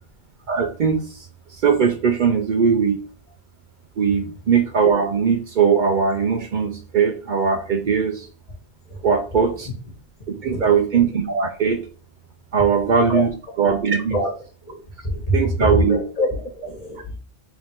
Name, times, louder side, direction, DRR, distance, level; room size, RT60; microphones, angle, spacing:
voice 1, 0.5-1.3 1.6-3.0 4.0-8.3 9.0-9.7 10.3-11.8 12.5-13.3 13.6-14.2 15.3-16.0, right 6 dB, 60° right, 6 dB, 0.6 m, -20 dB
voice 2, 10.3-10.7 13.1-13.2 14.1-14.3 14.7-16.3 16.6-17.0, left 1 dB, 40° left, 0 dB, 1.3 m, -24 dB
3.5 x 2.7 x 4.4 m, 0.39 s
omnidirectional pair, 1.0 m